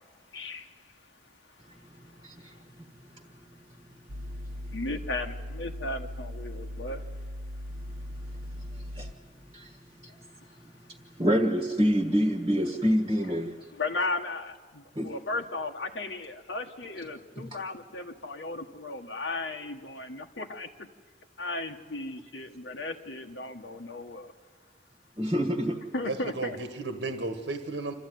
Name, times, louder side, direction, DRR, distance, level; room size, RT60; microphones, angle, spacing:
voice 1, 0.3-0.7 4.7-7.0 13.7-20.9 21.4-24.3 25.9-26.6, left 2 dB, 80° left, 3 dB, 1.4 m, -35 dB
sound 1, 4.1-9.1, left 1 dB, 50° right, 1.0 m, -39 dB
voice 2, 11.2-13.5 15.0-15.1 25.2-25.8, equal, 25° right, 3 dB, 1.3 m, -26 dB
voice 3, 26.0-27.9, right 2 dB, 80° right, 8 dB, 1.5 m, -34 dB
27.0 x 13.5 x 9.3 m, 1.6 s
head